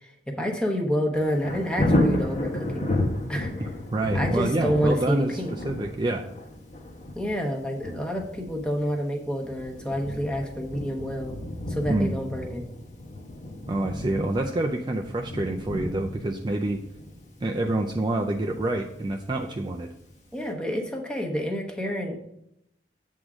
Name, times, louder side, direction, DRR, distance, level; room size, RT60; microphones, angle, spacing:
voice 1, 0.0-2.9 3.3-3.5 4.1-5.5 7.1-11.4 11.7-12.6 20.3-22.2, equal, 5° left, 1 dB, 1.0 m, -28 dB
Thunder, 1.1-19.9 20.4-20.5, left 1 dB, 45° left, 1.1 m, -32 dB
voice 2, 3.9-6.3 11.9-12.1 13.7-16.8 17.4-19.9, right 2 dB, 25° right, 2 dB, 0.4 m, -27 dB
8.0 x 3.7 x 6.0 m, 0.80 s
head